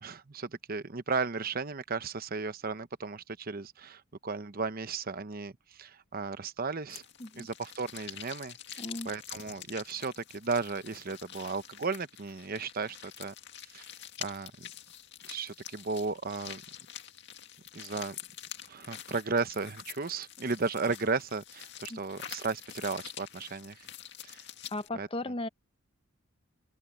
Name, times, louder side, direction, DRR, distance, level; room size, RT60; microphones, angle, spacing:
voice 1, 0.0-7.0 7.4-13.3 13.6-13.9 14.2-14.7 15.3-16.6 17.7-18.2 18.7-23.9 24.2-24.4 24.9-25.1, right 4 dB, 45° right, 0.9 m, -35 dB
sound 1, 6.9-24.9, left 10 dB, 55° left, 2.1 m, -46 dB
voice 2, 8.8-9.1 21.9-22.0 24.7-25.5, left 2 dB, 25° left, 0.9 m, -36 dB
open air
head